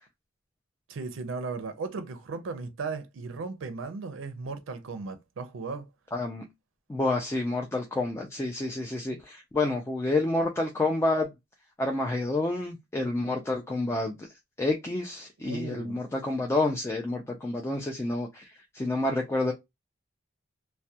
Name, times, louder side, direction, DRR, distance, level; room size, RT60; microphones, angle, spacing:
voice 1, 0.9-5.9 15.4-16.0, right 4 dB, 75° right, 0.4 m, -36 dB
voice 2, 6.1-6.4 6.9-11.3 11.8-14.3 14.6-19.5, left 2 dB, 15° left, 0.3 m, -29 dB
2.2 x 2.1 x 2.6 m
head